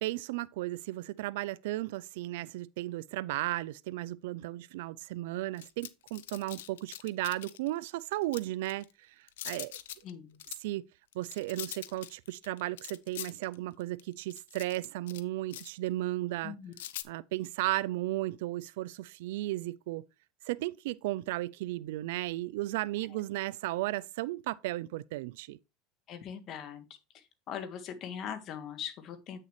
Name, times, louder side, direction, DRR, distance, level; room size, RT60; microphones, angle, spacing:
voice 1, 0.0-9.8 10.6-10.8 11.1-16.6 17.0-20.0 20.4-25.6, right 17 dB, 75° right, 0.3 m, -35 dB
sound 1, 5.6-7.7 8.1-8.9 9.3-10.1 10.4-10.6 11.1-15.2 15.5-15.9 16.7-17.0, left 13 dB, 85° left, 0.6 m, -43 dB
voice 2, 10.0-10.4 16.4-16.7 26.1-26.8 27.1-29.4, left 8 dB, 45° left, 1.6 m, -41 dB
8.3 x 6.6 x 3.1 m
supercardioid pair, 110°, 0 cm